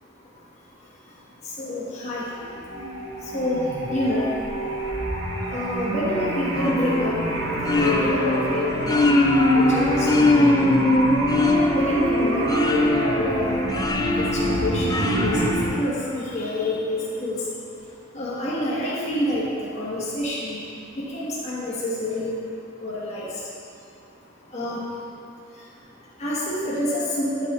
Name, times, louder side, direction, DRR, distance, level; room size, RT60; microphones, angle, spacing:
voice 1, 0.0-10.9 11.3-24.1 24.5-27.5, left 1 dB, 35° left, -7 dB, 1.2 m, -29 dB
sound 1, 2.3-15.7, right 1 dB, 70° right, 1.0 m, -27 dB
sound 2, 6.6-16.4, left 2 dB, 20° left, 0.3 m, -22 dB
8.6 x 5.1 x 3.1 m, 2.8 s
head